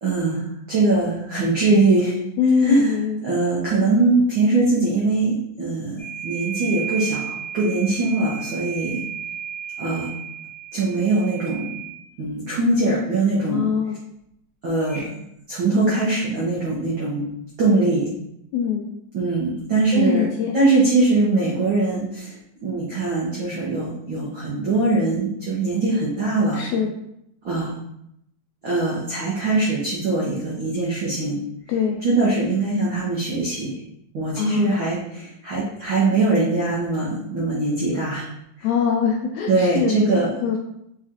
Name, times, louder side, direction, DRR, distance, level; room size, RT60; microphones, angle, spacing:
voice 1, 0.0-2.2 2.6-2.9 3.2-9.0 9.8-10.1 10.7-11.7 12.2-13.7 14.6-17.3 17.6-18.1 19.1-20.3 20.5-22.4 22.6-26.7 27.4-27.7 28.6-31.4 32.0-33.8 34.1-38.3 38.6-38.7 39.5-40.5, right 3 dB, 85° right, -6 dB, 1.1 m, -22 dB
voice 2, 2.4-3.2 13.5-14.0 18.5-18.9 19.9-20.5 26.5-26.9 31.7-32.0 34.3-34.7 38.6-39.9 40.4-40.6, left 6 dB, 80° left, 0 dB, 1.7 m, -22 dB
sound 1, 6.0-12.1 14.9-15.1, right 8 dB, 25° left, 0.7 m, -33 dB
4.9 x 3.8 x 2.8 m, 0.77 s
omnidirectional pair, 3.8 m